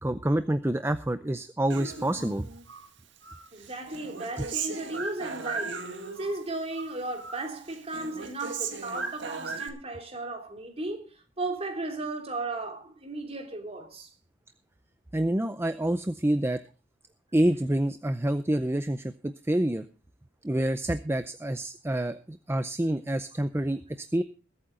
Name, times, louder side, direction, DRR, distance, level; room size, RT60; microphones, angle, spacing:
voice 1, 0.0-2.5 4.4-4.5 15.1-16.6 17.3-19.8 20.4-24.2, right 1 dB, 10° right, 0.5 m, -27 dB
Human voice, 1.7-2.9 3.2-6.4 6.7-7.4 7.7-9.7, right 4 dB, 60° right, 2.0 m, -37 dB
voice 2, 3.5-5.9 6.2-11.1 11.4-14.1, right 2 dB, 30° right, 3.0 m, -35 dB
21.0 x 8.8 x 3.8 m
head